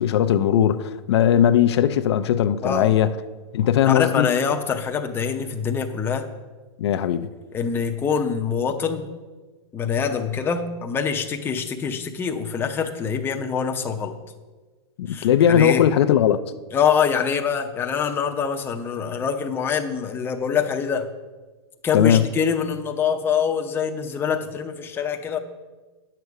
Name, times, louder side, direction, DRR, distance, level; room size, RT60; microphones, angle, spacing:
voice 1, 0.0-3.1 3.5-4.3 6.8-7.3 15.0-16.4 21.9-22.3, left 10 dB, 75° left, 0.5 m, -19 dB
voice 2, 2.6-3.0 3.7-6.3 7.5-9.1 9.7-14.1 15.1-15.8 16.7-21.1 21.8-25.4, left 6 dB, 15° left, 0.7 m, -25 dB
9.9 x 6.7 x 4.7 m
hypercardioid pair, 145°, 14 cm